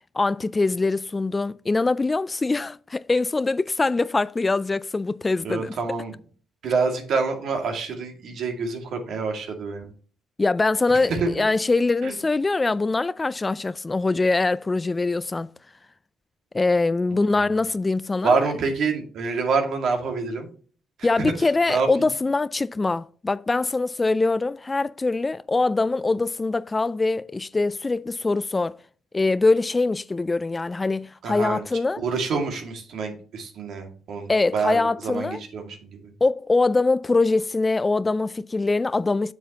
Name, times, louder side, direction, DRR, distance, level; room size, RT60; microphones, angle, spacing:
voice 1, 0.1-5.8 10.4-15.5 16.5-18.5 21.0-28.8 29.1-32.0 34.3-35.4 36.2-39.3, left 3 dB, 25° left, 0.3 m, -23 dB
voice 2, 5.4-6.1 6.6-9.9 11.1-11.3 12.0-12.2 17.1-17.3 18.2-20.5 21.2-21.3 21.7-22.1 31.2-31.6 32.0-36.0, right 4 dB, 70° right, 2.1 m, -26 dB
7.9 x 7.3 x 2.9 m
cardioid pair, 90°, 0 cm